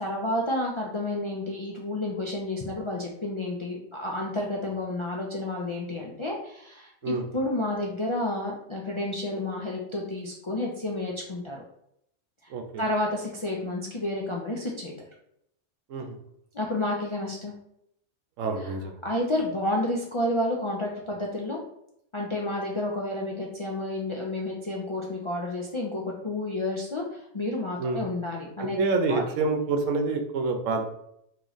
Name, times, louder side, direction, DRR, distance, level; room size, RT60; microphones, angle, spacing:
voice 1, 0.0-11.6 12.4-12.5 12.8-14.9 16.5-17.5 18.6-18.7 19.0-21.6 22.1-28.8 29.1-29.2, left 1 dB, 50° left, -2 dB, 0.3 m, -30 dB
voice 2, 12.5-12.8 15.9-16.2 18.4-19.0 27.8-28.0 28.6-30.8, right 3 dB, 90° right, 5 dB, 1.0 m, -27 dB
3.1 x 3.0 x 3.9 m, 0.75 s
omnidirectional pair, 1.3 m